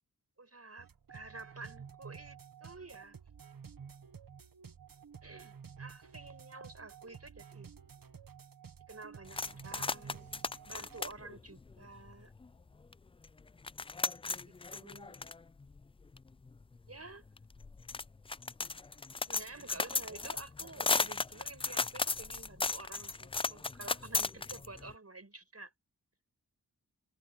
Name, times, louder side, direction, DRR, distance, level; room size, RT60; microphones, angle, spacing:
voice 1, 0.4-3.2 5.2-7.7 8.9-10.3 10.6-12.3 14.5-15.3 16.9-17.2 19.3-25.7, right 3 dB, 45° right, 5.5 m, -50 dB
sound 1, 0.8-11.1, right 7 dB, 70° right, 1.5 m, -52 dB
sound 2, 9.3-12.5 12.9-13.0 13.2-24.9, left 4 dB, 15° left, 0.3 m, -36 dB
cardioid pair, 40°, 35 cm